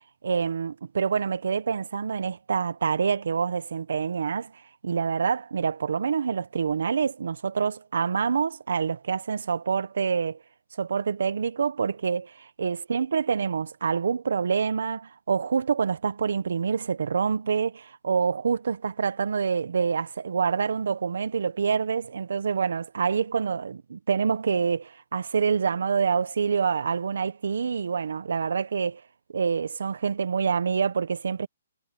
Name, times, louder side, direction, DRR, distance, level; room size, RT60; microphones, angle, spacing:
voice 1, 0.2-10.4 10.8-29.0 29.3-31.5, right 6 dB, 80° right, 1.0 m, -26 dB
hypercardioid pair, 160°, 0 cm